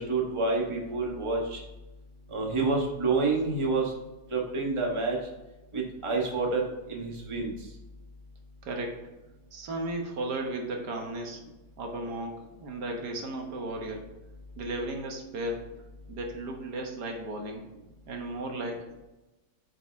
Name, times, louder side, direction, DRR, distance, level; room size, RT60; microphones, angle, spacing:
voice 1, 0.0-1.6 2.3-3.9 4.3-5.2 5.7-7.5, right 3 dB, 20° right, -1 dB, 1.2 m, -28 dB
voice 2, 8.6-9.1 9.5-11.4 11.8-14.0 14.6-15.7 16.1-17.6 18.1-19.0, right 2 dB, 75° right, 2 dB, 1.7 m, -35 dB
8.5 x 4.9 x 3.5 m, 1.1 s
omnidirectional pair, 1.8 m